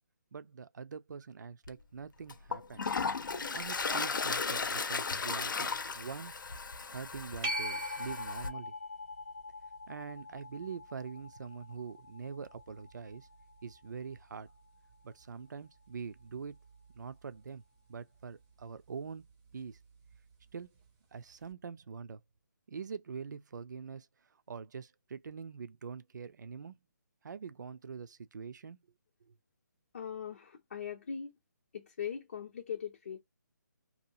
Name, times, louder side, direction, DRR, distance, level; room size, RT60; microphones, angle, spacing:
voice 1, 0.3-2.9 3.5-6.3 6.9-8.7 9.9-13.3 13.6-14.5 15.0-16.6 16.9-17.6 17.9-19.2 19.5-19.8 20.5-20.7 21.1-22.2 22.7-24.1 24.5-26.8 27.2-28.8, right 6 dB, 65° right, 0.4 m, -44 dB
Toilet flush, 1.6-1.7 2.3-8.5, left 4 dB, 80° left, 0.7 m, -35 dB
sound 1, 7.4-14.6 20.1-20.2, equal, 10° right, 0.5 m, -42 dB
voice 2, 29.9-31.3 31.7-33.2, left 7 dB, 35° left, 0.6 m, -40 dB
2.7 x 2.4 x 2.7 m
hypercardioid pair, 175°, 11 cm